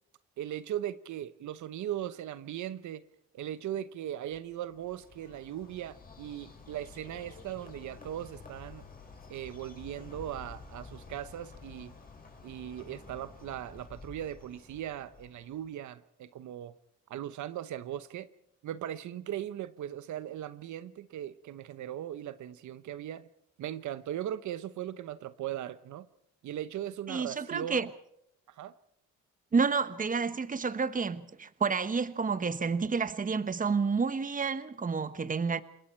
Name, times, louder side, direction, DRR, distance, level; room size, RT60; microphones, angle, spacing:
voice 1, 0.4-3.0 3.3-8.9 9.3-11.9 12.4-16.7 17.1-18.3 18.6-23.3 23.6-26.1 26.4-27.9 28.6-28.7, right 11 dB, 75° right, 1.0 m, -38 dB
Bird, 4.3-15.7, left 4 dB, 30° left, 6.0 m, -51 dB
voice 2, 27.1-27.9 29.5-35.6, right 5 dB, 25° right, 1.2 m, -30 dB
27.5 x 21.0 x 4.5 m
cardioid pair, 90°, 30 cm